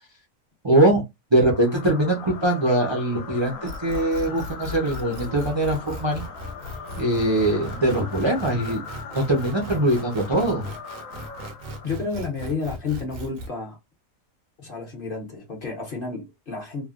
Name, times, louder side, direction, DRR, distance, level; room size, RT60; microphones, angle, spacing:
voice 1, 0.6-1.0 1.3-6.2 7.0-8.8 9.1-10.7, right 1 dB, 30° right, 0.5 m, -22 dB
sound 1, 1.5-12.2, left 5 dB, 80° left, 1.2 m, -40 dB
sound 2, 3.7-13.5, equal, 75° right, 1.2 m, -37 dB
voice 2, 11.8-13.8 14.6-16.9, left 4 dB, 45° left, 1.1 m, -31 dB
3.1 x 2.3 x 2.4 m
omnidirectional pair, 1.4 m